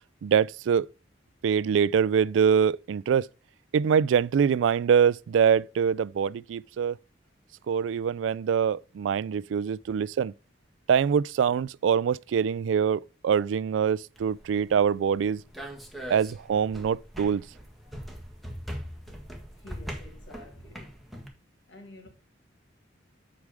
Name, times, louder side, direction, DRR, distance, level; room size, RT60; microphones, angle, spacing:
voice 1, 0.2-0.9 1.4-3.3 3.7-7.0 7.7-10.3 10.9-15.4 16.1-17.4, right 7 dB, 85° right, 0.3 m, -24 dB
sound 1, 14.1-21.3, equal, ahead, 1.6 m, -41 dB
voice 2, 19.6-20.9 21.7-22.1, left 2 dB, 70° left, 2.8 m, -49 dB
8.2 x 5.0 x 4.9 m
head